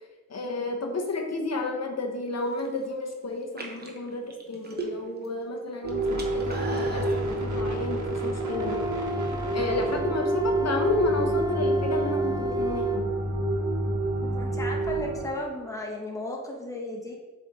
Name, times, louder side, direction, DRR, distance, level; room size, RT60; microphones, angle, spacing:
voice 1, 0.3-8.8 9.1-13.1, left 2 dB, 60° left, 2 dB, 0.8 m, -31 dB
sound 1, 2.4-2.8 3.4-5.3 5.6-7.2, right 3 dB, 35° right, 1.0 m, -37 dB
sound 2, 5.8-15.3, right 1 dB, 80° right, 1.2 m, -28 dB
Wind instrument woodwind instrument, 8.4-13.0, left 1 dB, 15° right, 0.6 m, -36 dB
voice 2, 14.2-17.2, left 1 dB, 10° left, -1 dB, 1.1 m, -35 dB
7.3 x 3.3 x 4.1 m, 1.3 s
wide cardioid pair, 95°, 30 cm